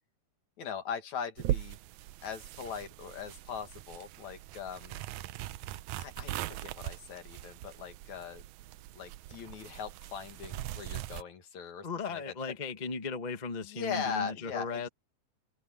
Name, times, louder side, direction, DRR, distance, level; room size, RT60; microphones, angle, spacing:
voice 1, 0.6-1.8 2.2-5.0 6.0-8.4 9.0-12.5 13.6-14.9, left 6 dB, 70° left, 3.4 m, -40 dB
sound 1, 1.4-11.2, right 14 dB, 80° right, 2.0 m, -40 dB
voice 2, 11.8-14.9, left 4 dB, 25° left, 0.9 m, -36 dB
omnidirectional pair, 3.4 m